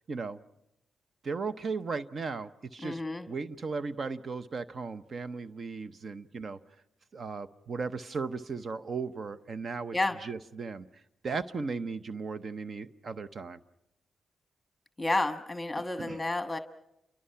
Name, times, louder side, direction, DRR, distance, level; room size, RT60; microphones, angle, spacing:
voice 1, 0.1-0.4 1.2-3.0 3.3-6.6 7.1-10.0 10.2-10.8 11.2-13.6 16.0-16.2, right 4 dB, 55° right, 12 dB, 0.8 m, -36 dB
voice 2, 2.8-3.3 9.9-10.2 15.0-16.6, left 2 dB, 15° left, 8 dB, 1.2 m, -30 dB
28.5 x 24.0 x 5.7 m, 0.86 s
cardioid pair, 60°, 0 cm